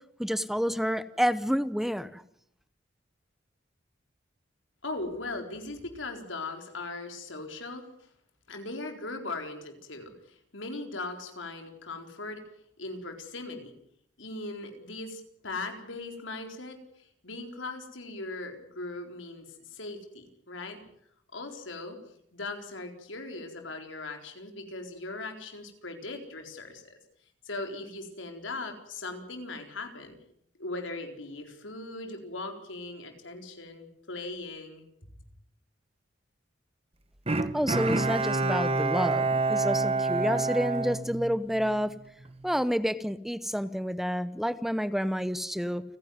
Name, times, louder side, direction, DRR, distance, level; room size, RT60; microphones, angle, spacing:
voice 1, 0.2-2.2 37.5-41.9 42.4-45.8, equal, ahead, 14 dB, 0.8 m, -29 dB
voice 2, 4.8-7.8 8.5-12.4 12.8-13.7 14.2-20.8 21.3-22.0 22.3-26.9 27.4-30.2 30.6-34.8, left 2 dB, 90° left, 4 dB, 4.2 m, -39 dB
Bowed string instrument, 37.3-41.8 42.2-42.3, right 3 dB, 30° right, 1.4 m, -28 dB
29.5 x 10.5 x 9.5 m, 0.72 s
head